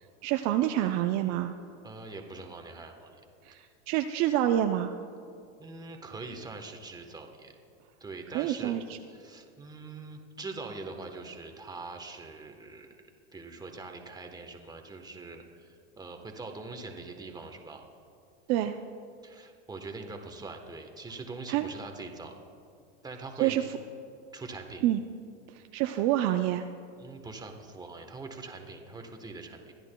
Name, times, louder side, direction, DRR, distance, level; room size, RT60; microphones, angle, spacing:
voice 1, 0.2-1.5 3.5-4.9 8.3-8.8 18.5-18.8 21.5-21.7 23.4-23.6 24.8-25.0 25.7-26.7, right 12 dB, 50° right, 7 dB, 0.5 m, -27 dB
voice 2, 1.8-3.2 5.6-7.5 8.0-8.8 9.1-12.9 13.3-17.8 19.2-22.3 23.0-23.6 24.3-24.8 27.0-29.7, right 3 dB, 10° right, 4 dB, 1.1 m, -43 dB
23.5 x 10.5 x 2.3 m, 2.5 s
supercardioid pair, 115°, 35 cm